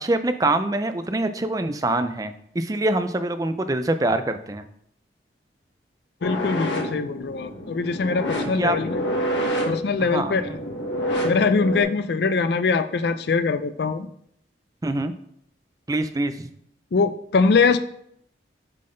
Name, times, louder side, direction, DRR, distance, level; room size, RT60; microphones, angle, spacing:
voice 1, 0.0-4.6 8.6-8.8 10.0-10.6 14.8-15.1 15.9-16.5, right 2 dB, 20° right, 10 dB, 0.4 m, -24 dB
sound 1, 6.2-11.8, equal, 75° left, 1.3 m, -28 dB
voice 2, 6.2-9.0 9.7-10.5 11.2-14.1 16.9-17.8, left 4 dB, 60° left, 10 dB, 0.4 m, -22 dB
7.6 x 3.9 x 3.8 m, 0.69 s
head